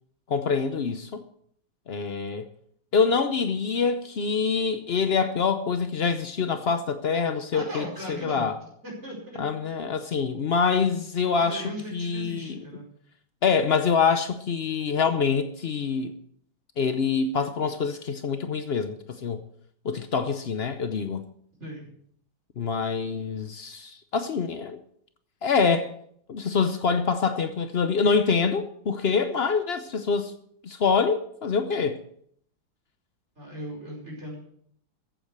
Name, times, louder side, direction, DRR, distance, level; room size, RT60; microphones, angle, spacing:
voice 1, 0.3-1.2 1.9-2.5 2.9-8.6 9.4-12.6 13.4-16.1 16.8-19.4 19.8-21.2 22.6-24.8 25.4-25.9 26.3-30.3 30.6-32.0, left 5 dB, 80° left, 0.5 m, -25 dB
voice 2, 7.5-8.5 8.8-9.4 11.5-12.9 21.6-21.9 33.4-34.4, equal, 35° right, 5.3 m, -37 dB
14.5 x 8.8 x 6.7 m
omnidirectional pair, 2.2 m